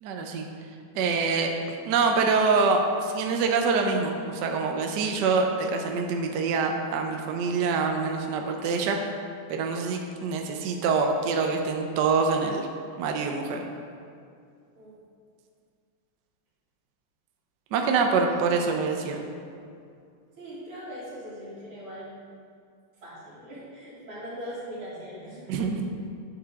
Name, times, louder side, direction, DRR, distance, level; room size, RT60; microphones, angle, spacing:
voice 1, 0.0-0.5 0.9-9.0 9.5-12.7 13.0-13.6 17.7-19.2 25.5-25.9, right 4 dB, 65° right, 3 dB, 1.2 m, -25 dB
voice 2, 17.7-18.2 20.4-22.2 23.0-25.5, equal, 85° right, -8 dB, 3.5 m, -40 dB
10.5 x 6.8 x 3.6 m, 2.4 s
omnidirectional pair, 2.4 m